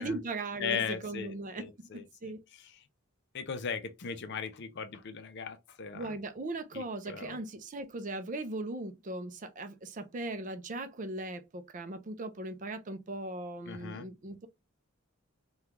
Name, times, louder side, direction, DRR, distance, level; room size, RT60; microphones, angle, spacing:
voice 1, 0.0-2.4 5.9-14.5, right 2 dB, 35° right, 0.4 m, -39 dB
voice 2, 0.6-2.3 2.6-2.8 3.3-6.2 6.7-7.4 13.7-14.1, left 6 dB, 50° left, 0.5 m, -38 dB
3.6 x 2.3 x 2.9 m
head